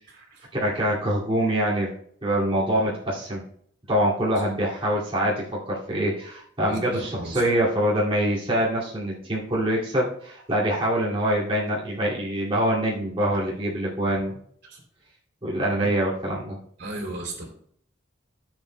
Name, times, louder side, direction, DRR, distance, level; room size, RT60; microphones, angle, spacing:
voice 1, 0.5-1.9 2.2-3.4 3.9-14.4 15.4-16.6, right 1 dB, 30° right, -7 dB, 2.3 m, -24 dB
voice 2, 6.6-7.3 14.7-14.8 15.8-15.9 16.8-17.5, right 1 dB, 60° right, 1 dB, 3.0 m, -34 dB
15.0 x 7.1 x 2.2 m, 0.64 s
head